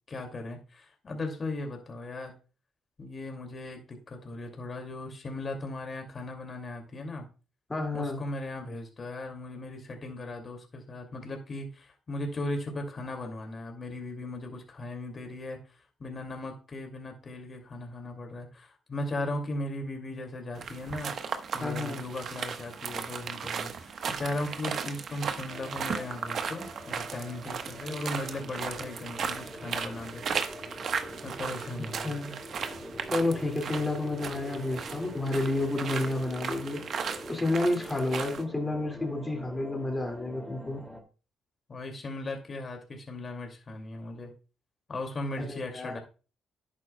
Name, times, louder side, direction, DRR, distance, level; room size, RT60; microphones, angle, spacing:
voice 1, 0.1-2.4 3.0-7.2 7.9-15.6 16.0-21.1 21.5-30.2 31.2-32.2 41.7-44.3 44.9-46.0, left 2 dB, 40° left, 3 dB, 2.4 m, -37 dB
voice 2, 7.7-8.2 21.6-22.0 32.0-32.4 33.1-36.8 37.3-40.8 45.4-46.0, left 2 dB, 20° left, 2 dB, 2.3 m, -30 dB
sound 1, 20.6-38.4, right 6 dB, 60° right, 1.1 m, -36 dB
sound 2, 25.5-41.0, left 1 dB, 5° right, 2.4 m, -45 dB
11.0 x 9.0 x 2.3 m, 0.34 s
cardioid pair, 90°, 0 cm